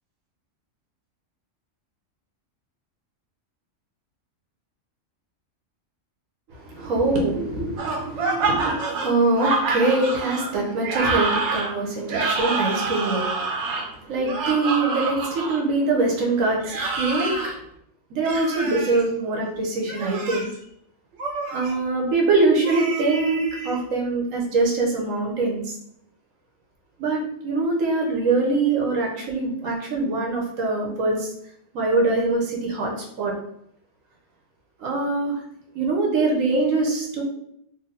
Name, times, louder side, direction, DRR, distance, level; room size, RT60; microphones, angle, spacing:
voice 1, 6.5-17.3 18.1-20.5 21.5-25.7 27.0-31.3 31.7-32.9 33.2-33.3 34.8-35.4 35.7-37.2, right 3 dB, 85° right, 0 dB, 1.3 m, -23 dB
sound 1, 7.8-15.6 16.6-17.5 18.2-19.0 19.8-20.5 21.2-21.7 22.6-23.8, right 3 dB, 65° right, 0.9 m, -27 dB
3.0 x 2.6 x 3.8 m, 0.73 s
omnidirectional pair, 1.3 m